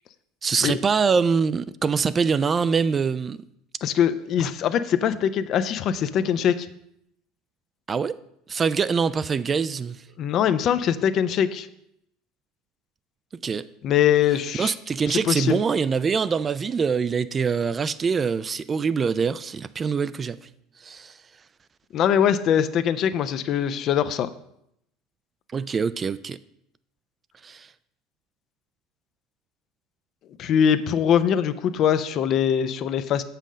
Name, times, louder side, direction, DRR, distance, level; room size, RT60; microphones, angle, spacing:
voice 1, 0.4-3.4 7.9-8.1 8.5-10.0 13.4-13.6 14.6-20.4 20.8-21.2 25.5-26.4 27.4-27.7, right 5 dB, 30° right, 16 dB, 0.3 m, -24 dB
voice 2, 3.8-6.7 10.2-11.7 13.8-14.7 15.1-15.6 21.9-24.3 30.4-33.2, left 9 dB, 50° left, 12 dB, 0.5 m, -22 dB
7.2 x 5.7 x 5.1 m, 0.75 s
hypercardioid pair, 70°, 0 cm